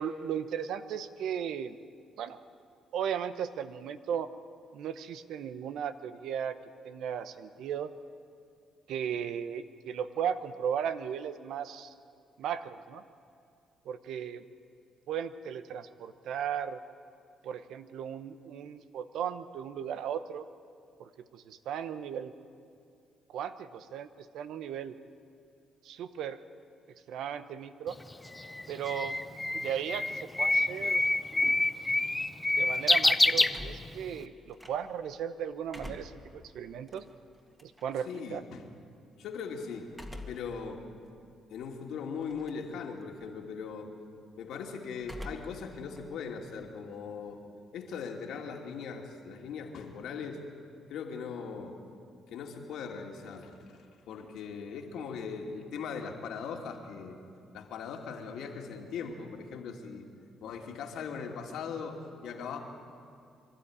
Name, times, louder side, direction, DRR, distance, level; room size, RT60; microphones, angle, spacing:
voice 1, 0.0-1.8 2.2-2.4 2.9-4.3 4.7-6.6 6.8-7.9 8.9-11.9 12.4-13.0 13.8-14.4 15.1-16.8 17.4-20.4 21.0-22.3 23.3-25.0 25.8-26.4 27.1-28.0 28.7-29.2 29.5-31.0 32.6-37.0 37.6-38.4, right 8 dB, 80° right, 12 dB, 0.9 m, -36 dB
Bird, 27.9-34.2, left 2 dB, 15° left, 0.7 m, -27 dB
sound 1, 33.5-35.1 35.5-38.1 39.9-40.6 41.1-41.2 42.2-42.7 43.0-43.4 45.0-45.7 46.0-47.4, left 1 dB, 10° right, 2.1 m, -46 dB
voice 2, 38.0-38.6 39.2-40.0 40.2-40.9 41.5-43.9 44.4-47.4 47.7-50.4 50.9-51.8 52.3-57.2 57.5-60.1 60.4-62.6, left 5 dB, 80° left, 1 dB, 2.5 m, -39 dB
24.5 x 12.5 x 9.9 m, 2.4 s
cardioid pair, 90°, 0 cm